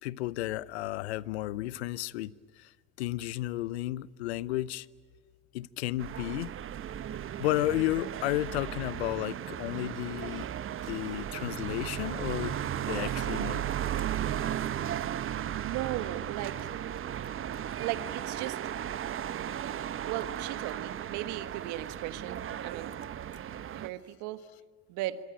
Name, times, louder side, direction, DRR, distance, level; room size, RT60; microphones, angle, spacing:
voice 1, 0.0-2.7 3.0-4.9 5.5-6.5 7.1-10.5 10.9-13.6, left 16 dB, 85° left, 0.7 m, -33 dB
sound 1, 6.0-23.9, right 10 dB, 40° right, 1.0 m, -35 dB
voice 2, 15.5-16.6 17.8-18.6 20.1-22.9 23.7-24.4 24.9-25.2, right 14 dB, 70° right, 1.5 m, -36 dB
26.5 x 23.0 x 9.0 m
hypercardioid pair, 70°, 31 cm